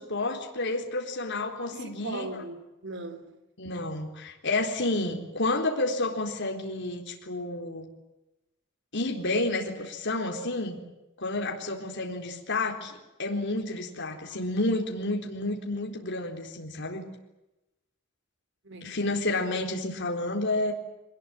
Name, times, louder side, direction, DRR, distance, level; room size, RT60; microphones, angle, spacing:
voice 1, 0.0-2.3 3.6-7.9 8.9-10.8 11.2-17.1 18.8-20.7, left 2 dB, 60° left, 4.1 m, -30 dB
voice 2, 1.7-3.4 18.6-19.0, right 2 dB, 60° right, 3.1 m, -39 dB
24.5 x 20.5 x 9.3 m
head